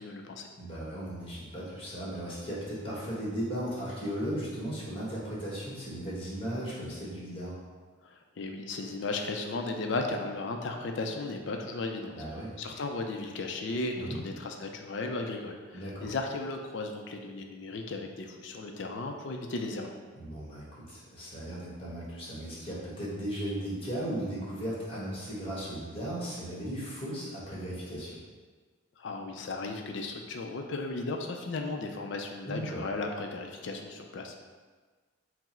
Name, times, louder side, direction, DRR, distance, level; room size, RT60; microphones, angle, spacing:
voice 1, 0.0-0.5 8.0-12.1 12.6-20.0 29.0-34.4, left 3 dB, 55° left, 4 dB, 0.4 m, -35 dB
voice 2, 0.6-7.5 12.1-12.5 13.9-14.2 15.7-16.1 20.1-28.2 32.5-32.8, equal, 25° left, -7 dB, 1.2 m, -36 dB
4.5 x 2.0 x 4.2 m, 1.4 s
head